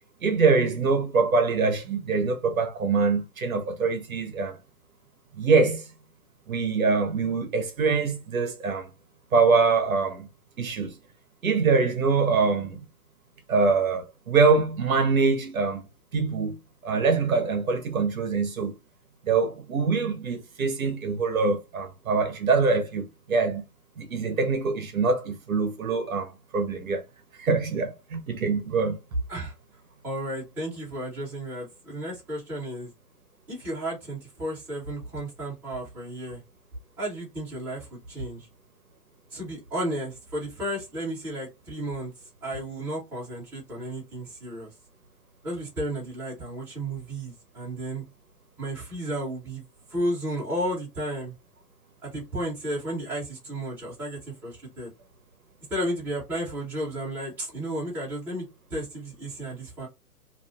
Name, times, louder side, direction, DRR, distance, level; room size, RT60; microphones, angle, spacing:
voice 1, 0.2-4.6 5.4-5.9 6.5-8.9 9.3-10.3 10.6-11.0 11.4-12.8 13.5-15.9 16.1-16.6 16.8-18.8 19.2-23.6 24.0-27.0 27.4-29.0, right 4 dB, 60° right, 0.8 m, -24 dB
voice 2, 30.0-32.9 33.5-36.4 37.0-38.5 39.3-42.1 42.4-44.7 45.4-48.0 48.6-49.6 49.9-51.3 52.0-54.9 55.7-59.9, right 1 dB, 5° right, 0.9 m, -33 dB
2.5 x 2.3 x 2.3 m
figure-of-eight pair, 130°, 48 cm